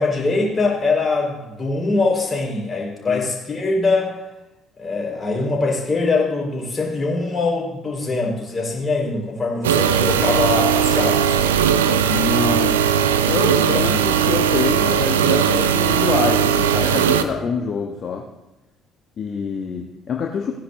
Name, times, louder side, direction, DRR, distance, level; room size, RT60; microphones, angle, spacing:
voice 1, 0.0-4.2 4.8-11.4, left 3 dB, 30° left, -2 dB, 4.2 m, -22 dB
sound 1, 9.6-17.2, right 8 dB, 80° right, 0.4 m, -18 dB
voice 2, 12.0-12.8 13.2-18.3 19.2-20.5, left 6 dB, 50° left, 1 dB, 1.0 m, -26 dB
16.5 x 9.9 x 2.6 m, 0.98 s
figure-of-eight pair, 50°, 0 cm